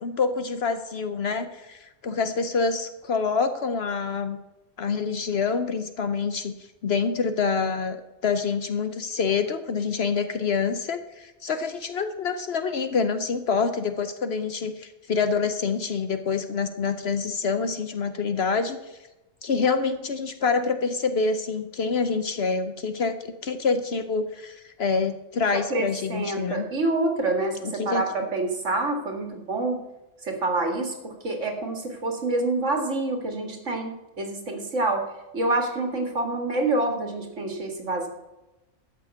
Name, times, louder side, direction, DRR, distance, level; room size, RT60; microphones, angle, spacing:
voice 1, 0.0-4.4 4.8-6.6 6.8-18.8 19.4-26.7 27.6-28.1, left 5 dB, 60° left, 9 dB, 1.0 m, -26 dB
voice 2, 25.5-29.8 30.2-35.0 35.3-38.1, right 2 dB, 75° right, 3 dB, 2.3 m, -27 dB
13.0 x 5.9 x 8.3 m, 1.0 s
omnidirectional pair, 1.3 m